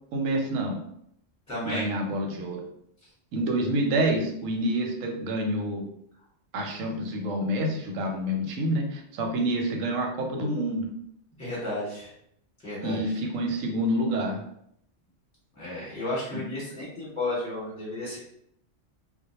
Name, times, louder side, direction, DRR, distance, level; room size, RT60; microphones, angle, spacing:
voice 1, 0.1-0.8 1.6-2.6 3.3-5.8 6.5-10.8 12.8-14.4 16.3-16.4, right 1 dB, 90° right, 1 dB, 1.0 m, -28 dB
voice 2, 1.5-1.9 11.4-12.1 12.6-13.2 15.5-18.2, left 1 dB, 5° left, -8 dB, 1.0 m, -33 dB
2.2 x 2.1 x 2.8 m, 0.72 s
omnidirectional pair, 1.3 m